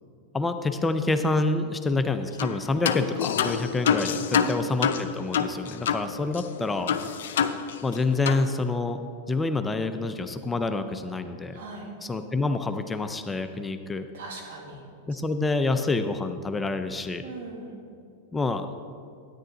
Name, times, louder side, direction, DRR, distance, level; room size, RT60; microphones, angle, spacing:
voice 1, 0.3-6.9 7.5-9.0 9.3-11.6 12.0-14.1 15.1-17.2 18.3-18.7, left 3 dB, 15° left, 8 dB, 0.5 m, -27 dB
sound 1, 2.4-2.6 2.8-6.1 6.3-6.4 6.9-8.0 8.2-8.4, left 7 dB, 70° left, 0.5 m, -26 dB
voice 2, 4.1-4.6 11.5-11.9 14.1-14.8 17.2-17.8, right 3 dB, 70° right, 0 dB, 2.0 m, -39 dB
9.9 x 9.6 x 3.9 m, 2.4 s
hypercardioid pair, 100°, 0 cm